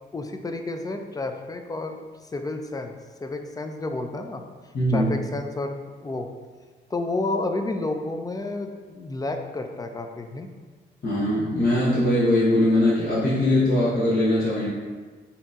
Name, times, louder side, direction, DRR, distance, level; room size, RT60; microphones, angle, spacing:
voice 1, 0.1-3.0 3.2-4.4 4.9-5.7 6.0-6.3 6.9-10.5, left 2 dB, 20° left, 5 dB, 0.5 m, -30 dB
voice 2, 4.7-5.1 11.0-14.7, left 1 dB, 55° left, -9 dB, 1.1 m, -21 dB
3.9 x 2.9 x 3.6 m, 1.4 s
cardioid pair, 70°, 19 cm